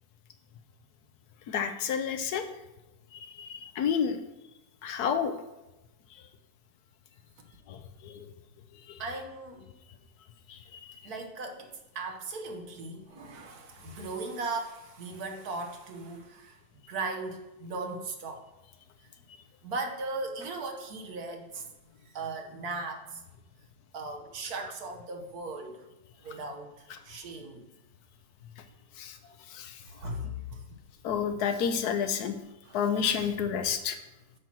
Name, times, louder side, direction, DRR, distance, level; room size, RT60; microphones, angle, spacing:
voice 1, 1.5-2.5 3.1-4.2 4.8-5.3 7.7-7.8 8.0-8.3 8.9-9.0 10.5-10.8 29.0-29.2 29.5-29.7 31.0-32.4 32.7-34.0, left 7 dB, 75° left, 8 dB, 1.2 m, -30 dB
voice 2, 9.0-9.6 11.0-18.4 19.6-21.7 22.0-23.2 23.9-25.8 26.2-27.6 29.8-30.6 31.3-31.4 32.6-32.8, right 3 dB, 65° right, 4 dB, 1.5 m, -38 dB
8.3 x 4.5 x 6.0 m, 0.95 s
omnidirectional pair, 1.8 m